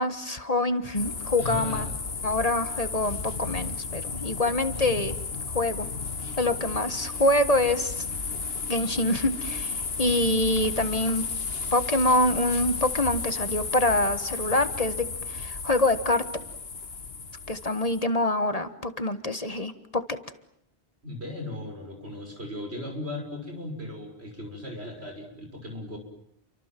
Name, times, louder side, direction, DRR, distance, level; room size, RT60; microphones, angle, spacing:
voice 1, 0.0-1.8 2.2-5.1 5.5-5.9 6.4-8.0 8.7-11.2 11.7-16.2 17.5-20.2, left 1 dB, 35° left, 10 dB, 1.5 m, -25 dB
sound 1, 0.9-18.0, left 4 dB, 70° left, 1.8 m, -33 dB
voice 2, 1.4-1.9 21.0-26.0, left 1 dB, 80° right, 4 dB, 6.4 m, -37 dB
29.5 x 24.5 x 7.6 m, 0.71 s
omnidirectional pair, 1.1 m